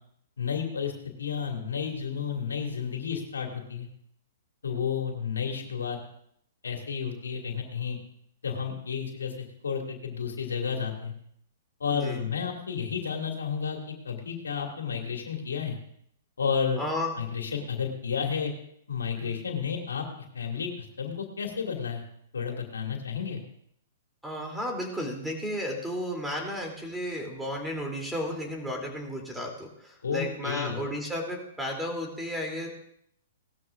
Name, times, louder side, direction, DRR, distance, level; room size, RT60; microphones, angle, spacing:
voice 1, 0.4-0.9 1.2-3.9 4.6-6.0 6.6-8.0 8.4-11.1 11.8-15.8 16.4-16.8 17.2-18.5 18.9-20.1 20.3-22.0 22.3-23.4 30.0-30.8, left 6 dB, 85° left, 2 dB, 2.4 m, -31 dB
voice 2, 16.8-17.1 19.2-19.3 24.2-32.7, left 1 dB, 5° right, 1 dB, 3.0 m, -33 dB
18.5 x 13.0 x 2.6 m, 0.69 s
hypercardioid pair, 120°, 0 cm